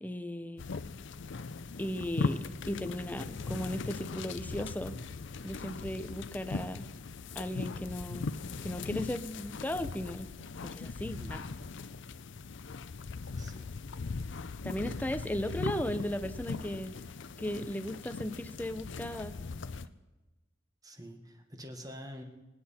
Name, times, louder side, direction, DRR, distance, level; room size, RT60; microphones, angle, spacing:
voice 1, 0.0-0.6 1.8-5.0 5.4-6.9 7.3-8.3 8.6-10.3 10.6-11.4 14.6-17.0 17.4-19.4, left 1 dB, 10° left, 10 dB, 0.6 m, -36 dB
sound 1, 0.6-19.9, left 4 dB, 65° left, 0.6 m, -39 dB
voice 2, 13.2-13.7 20.8-22.2, equal, 20° right, 5 dB, 1.6 m, -46 dB
25.0 x 9.6 x 4.4 m, 1.1 s
head